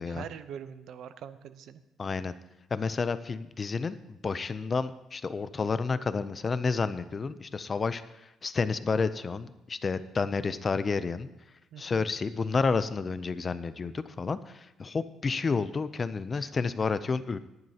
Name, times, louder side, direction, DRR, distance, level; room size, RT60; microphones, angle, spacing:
voice 1, 0.1-1.8 11.7-12.1 16.3-16.5, right 8 dB, 60° right, 13 dB, 0.6 m, -43 dB
voice 2, 2.0-2.3 2.7-11.3 11.8-17.4, left 4 dB, 25° left, 13 dB, 0.4 m, -30 dB
18.5 x 10.5 x 2.8 m, 0.94 s
cardioid pair, 165°, 0 cm